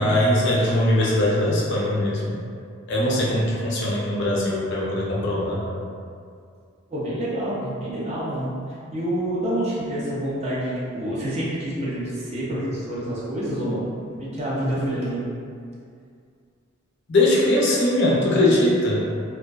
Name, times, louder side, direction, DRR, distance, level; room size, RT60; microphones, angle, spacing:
voice 1, 0.0-2.4 2.9-5.6 17.1-19.0, left 1 dB, 55° left, -5 dB, 0.5 m, -21 dB
voice 2, 6.9-8.5 8.9-15.2, right 1 dB, 30° right, -8 dB, 0.5 m, -27 dB
2.5 x 2.1 x 2.3 m, 2.3 s
head